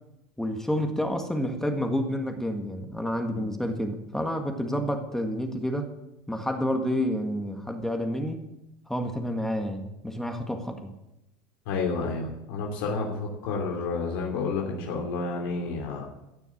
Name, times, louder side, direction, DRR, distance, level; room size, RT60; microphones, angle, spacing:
voice 1, 0.4-5.9 6.3-8.5 8.9-10.9, equal, 5° left, 5 dB, 1.7 m, -29 dB
voice 2, 11.7-16.1, left 4 dB, 75° left, 0 dB, 2.9 m, -30 dB
16.0 x 6.9 x 8.5 m, 0.90 s
supercardioid pair, 120°, 12 cm